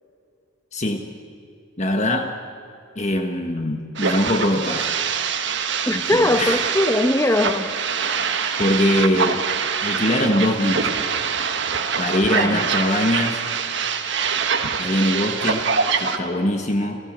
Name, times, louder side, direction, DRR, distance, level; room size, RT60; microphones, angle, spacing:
voice 1, 0.7-1.0 1.8-2.3 2.9-4.9 5.9-6.6 8.6-9.4 9.8-11.0 12.0-13.4 14.8-15.7 16.0-17.0, left 1 dB, 35° left, 4 dB, 1.3 m, -22 dB
sound 1, 4.0-16.2, right 6 dB, 55° right, 1.4 m, -24 dB
voice 2, 5.9-7.7 12.4-12.8, left 1 dB, 15° left, 9 dB, 1.0 m, -21 dB
29.5 x 15.5 x 7.4 m, 2.6 s
head